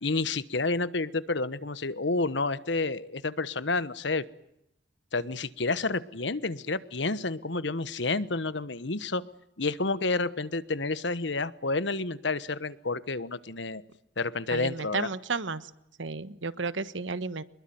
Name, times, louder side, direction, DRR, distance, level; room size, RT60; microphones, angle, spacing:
voice 1, 0.0-4.2 5.1-9.2 9.6-13.8 14.2-15.1, left 3 dB, 75° left, 15 dB, 1.3 m, -30 dB
voice 2, 14.5-15.6 16.0-17.4, right 4 dB, 85° right, 14 dB, 1.3 m, -32 dB
25.0 x 22.0 x 9.4 m, 0.81 s
head